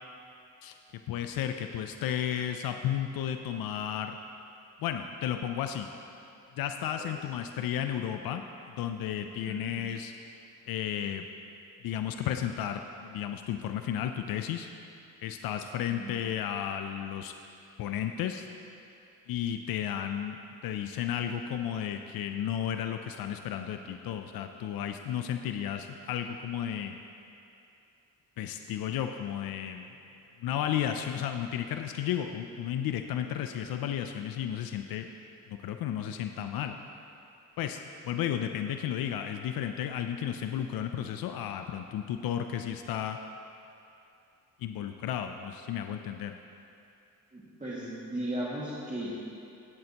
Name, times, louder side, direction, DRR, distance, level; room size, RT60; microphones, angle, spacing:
voice 1, 1.1-4.2 4.8-5.9 6.6-8.4 8.8-10.1 10.7-11.2 11.8-14.7 15.2-17.3 17.8-18.5 19.3-27.0 28.4-29.9 30.4-35.1 35.5-36.8 37.6-43.2 44.6-46.3, left 10 dB, 85° left, 6 dB, 0.5 m, -33 dB
voice 2, 9.4-9.7 15.9-16.2 47.3-49.1, right 1 dB, 20° right, -8 dB, 2.0 m, -36 dB
17.5 x 7.8 x 2.9 m, 2.7 s
cardioid pair, 95°, 34 cm